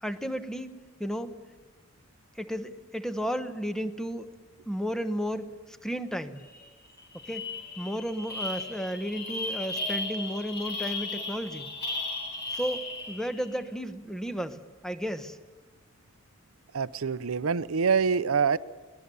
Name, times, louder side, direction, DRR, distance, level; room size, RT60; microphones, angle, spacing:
voice 1, 0.0-1.3 2.4-4.3 4.7-6.5 7.2-7.5 7.8-11.7 12.5-15.4, equal, 5° left, 9 dB, 1.0 m, -33 dB
sound 1, 6.5-6.7 7.0-13.4, left 2 dB, 55° left, 4.8 m, -35 dB
voice 2, 16.7-18.6, right 5 dB, 80° right, 15 dB, 0.6 m, -25 dB
23.0 x 19.0 x 6.9 m, 1.3 s
head